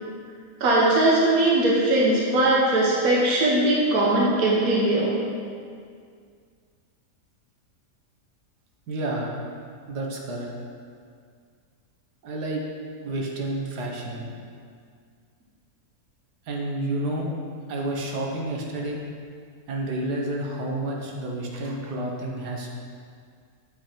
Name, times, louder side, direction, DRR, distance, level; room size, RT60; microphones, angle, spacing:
voice 1, 0.6-5.2, right 2 dB, 65° right, -4 dB, 1.5 m, -20 dB
voice 2, 8.9-9.4 9.9-10.5 12.2-12.6 13.0-14.3 16.5-17.3 17.7-19.0 19.7-22.7, right 1 dB, 85° right, -1 dB, 1.6 m, -30 dB
7.4 x 5.6 x 4.4 m, 2.2 s
omnidirectional pair, 1.7 m